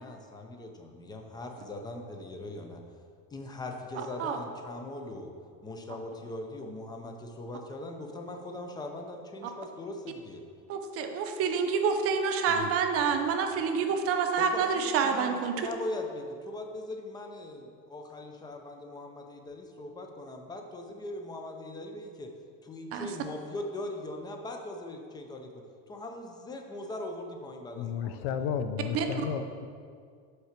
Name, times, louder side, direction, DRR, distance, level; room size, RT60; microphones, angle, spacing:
voice 1, 0.0-2.8 3.3-5.3 5.6-10.4 14.4-22.3 22.6-28.4, left 1 dB, 10° left, 3 dB, 0.4 m, -40 dB
voice 2, 10.7-15.7 22.9-23.1 28.9-29.2, right 6 dB, 40° right, 5 dB, 0.6 m, -28 dB
voice 3, 27.8-29.7, left 7 dB, 70° left, 9 dB, 0.6 m, -33 dB
5.8 x 4.6 x 5.8 m, 2.1 s
cardioid pair, 160°, 36 cm